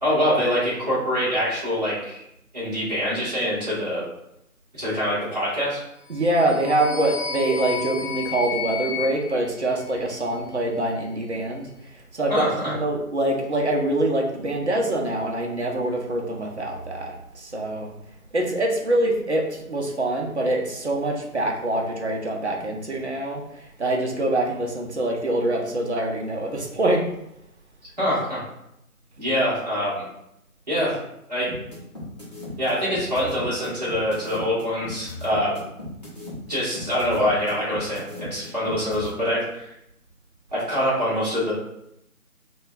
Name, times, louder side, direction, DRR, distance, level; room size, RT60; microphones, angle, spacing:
voice 1, 0.0-2.2 2.5-4.0 4.7-5.8 12.3-12.7 28.0-28.4 29.2-30.0 30.7-31.0 31.3-31.5 32.6-35.6 36.5-39.7 40.5-41.5, equal, 25° right, -9 dB, 1.2 m, -24 dB
sound 1, 6.1-10.4, left 7 dB, 80° left, 0.7 m, -33 dB
voice 2, 6.1-11.7 12.1-17.9 18.3-27.0, right 1 dB, 50° right, 1 dB, 0.6 m, -25 dB
sound 2, 31.5-39.1, left 1 dB, 30° left, 0.7 m, -37 dB
4.9 x 2.3 x 2.3 m, 0.82 s
figure-of-eight pair, 160°, 44 cm